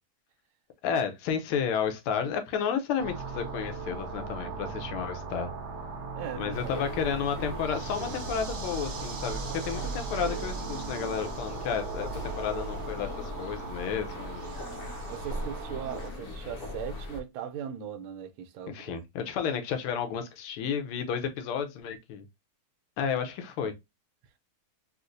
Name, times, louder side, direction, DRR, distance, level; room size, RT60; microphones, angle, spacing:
voice 1, 0.8-5.5 6.3-14.5 18.7-22.3 23.0-23.7, left 7 dB, 85° left, 1.6 m, -32 dB
sound 1, 3.0-16.1, right 4 dB, 60° right, 1.2 m, -38 dB
voice 2, 6.1-6.7 15.1-18.7 23.6-23.8, right 9 dB, 85° right, 1.4 m, -39 dB
sound 2, 6.5-17.2, equal, 65° left, 0.9 m, -39 dB
4.1 x 2.5 x 2.5 m
omnidirectional pair, 2.3 m